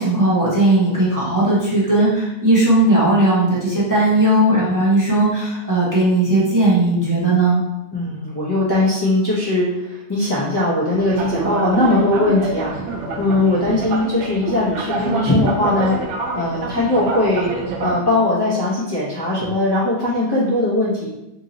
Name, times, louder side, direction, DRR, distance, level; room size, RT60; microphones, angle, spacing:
voice 1, 0.0-7.6, right 1 dB, 20° right, -8 dB, 0.8 m, -17 dB
voice 2, 7.9-16.0 16.3-17.5 17.8-21.1, left 2 dB, 25° left, -9 dB, 0.6 m, -20 dB
sound 1, 10.9-18.0, right 3 dB, 85° right, 0.9 m, -27 dB
2.9 x 2.6 x 3.9 m, 0.92 s
omnidirectional pair, 1.2 m